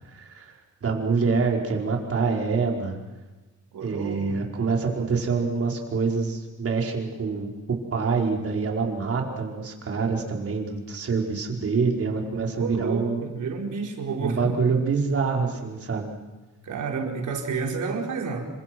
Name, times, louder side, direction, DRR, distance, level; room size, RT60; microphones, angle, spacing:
voice 1, 0.1-0.5 0.8-3.0 3.8-13.2 14.2-16.1, right 4 dB, 50° right, 1 dB, 5.0 m, -26 dB
voice 2, 3.7-4.4 12.6-14.6 16.6-18.5, right 4 dB, 75° right, 2 dB, 4.8 m, -30 dB
29.5 x 26.0 x 6.2 m, 1.2 s
wide cardioid pair, 130°, 30 cm